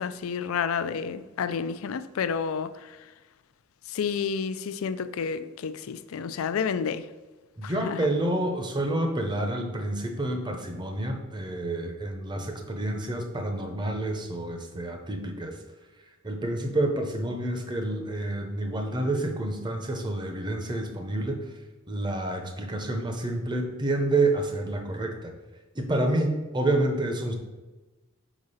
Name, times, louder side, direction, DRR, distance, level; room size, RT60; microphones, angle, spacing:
voice 1, 0.0-2.7 3.9-7.1 7.6-8.1, left 6 dB, 85° left, 0.4 m, -30 dB
voice 2, 7.6-15.6 16.2-21.4 21.9-25.3 25.8-27.4, right 2 dB, 20° right, 0.7 m, -28 dB
5.0 x 4.8 x 5.5 m
head